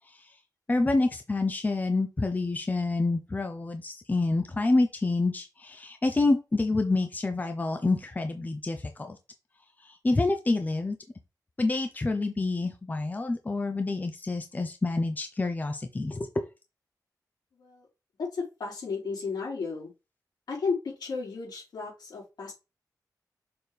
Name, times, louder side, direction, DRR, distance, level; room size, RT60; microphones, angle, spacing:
voice 1, 0.7-9.2 9.8-11.0 11.6-16.4, left 2 dB, 25° left, 6 dB, 0.7 m, -27 dB
voice 2, 18.3-19.9 20.5-22.5, left 4 dB, 80° left, -4 dB, 4.1 m, -33 dB
6.9 x 4.1 x 3.4 m, 0.27 s
wide cardioid pair, 120°, 7 cm